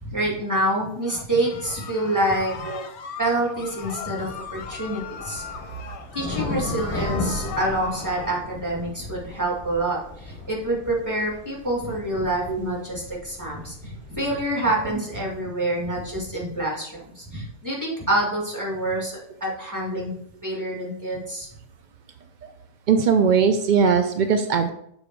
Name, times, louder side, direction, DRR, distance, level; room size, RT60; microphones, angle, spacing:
voice 1, 0.0-2.7 3.2-5.4 6.1-20.1 20.4-21.5, right 1 dB, 15° right, -4 dB, 2.0 m, -27 dB
sound 1, 1.0-8.4, left 6 dB, 65° left, 0.9 m, -38 dB
sound 2, 3.6-14.5, left 2 dB, 10° left, 0.9 m, -36 dB
voice 2, 22.9-24.7, right 6 dB, 75° right, 7 dB, 0.4 m, -20 dB
6.7 x 4.0 x 4.5 m, 0.69 s
omnidirectional pair, 1.4 m